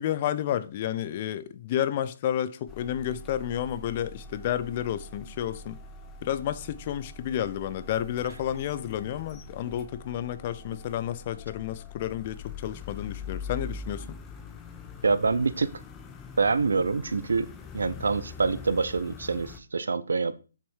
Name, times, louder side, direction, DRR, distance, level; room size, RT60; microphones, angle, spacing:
voice 1, 0.0-5.8 6.2-14.2, left 11 dB, 35° left, 0.7 m, -31 dB
sound 1, 2.7-19.6, left 4 dB, 15° left, 1.0 m, -43 dB
voice 2, 15.0-15.7 16.4-17.5 17.7-20.4, right 4 dB, 70° right, 0.8 m, -26 dB
6.8 x 6.1 x 4.7 m
figure-of-eight pair, 135°, 0 cm